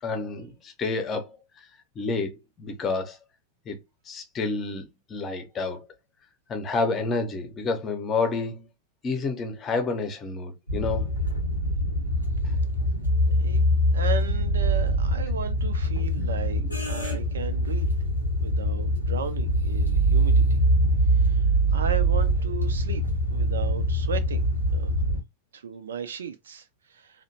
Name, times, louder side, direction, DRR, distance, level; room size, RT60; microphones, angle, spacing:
voice 1, 0.0-1.7 2.0-3.2 3.7-3.8 4.1-5.9 6.5-8.7 9.0-11.1 16.6-16.7 17.0-17.2, left 3 dB, 25° left, 0.7 m, -29 dB
sound 1, 10.7-25.2, right 1 dB, 85° right, 0.9 m, -24 dB
voice 2, 13.9-17.9 18.4-20.6 21.1-21.4 21.7-23.0 23.3-25.0 25.5-27.2, right 7 dB, 65° right, 0.5 m, -36 dB
2.8 x 2.1 x 2.7 m
figure-of-eight pair, 90°, 0 cm